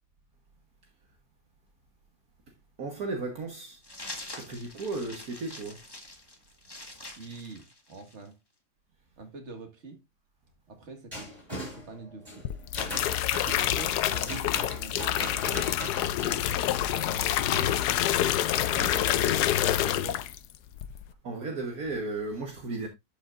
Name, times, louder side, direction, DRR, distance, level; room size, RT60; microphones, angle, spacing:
voice 1, 2.8-3.8 4.4-5.8 21.2-22.9, right 3 dB, 60° right, 1.8 m, -34 dB
sound 1, 3.8-8.3, left 1 dB, 15° left, 1.6 m, -44 dB
voice 2, 7.2-8.4 9.2-10.0 10.7-11.3 11.7-12.5 13.3-16.5 16.9-17.8 18.4-20.3, right 3 dB, 45° right, 2.1 m, -45 dB
sound 2, 11.1-17.9 18.5-19.5, left 1 dB, 20° right, 6.4 m, -40 dB
sound 3, 12.4-20.5 20.8-21.1, left 12 dB, 75° left, 1.2 m, -27 dB
12.0 x 5.8 x 2.5 m
omnidirectional pair, 1.8 m